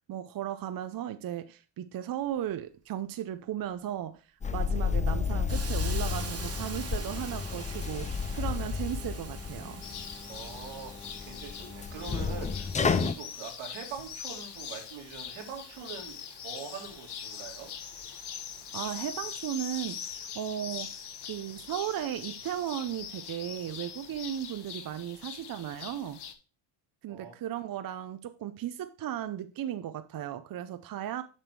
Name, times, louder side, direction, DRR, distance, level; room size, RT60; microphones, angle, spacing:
voice 1, 0.1-4.2 4.5-9.8 18.7-26.2 27.0-31.2, right 11 dB, 45° right, 0.6 m, -36 dB
sound 1, 4.4-13.1, left 5 dB, 15° left, 0.4 m, -32 dB
Hiss, 5.5-20.3, right 5 dB, 30° right, 1.4 m, -47 dB
sound 2, 9.8-26.3, left 8 dB, 55° left, 1.2 m, -42 dB
voice 2, 10.3-17.7 27.1-27.3, right 6 dB, 90° right, 2.6 m, -43 dB
7.4 x 5.2 x 4.6 m
cardioid pair, 95°, 47 cm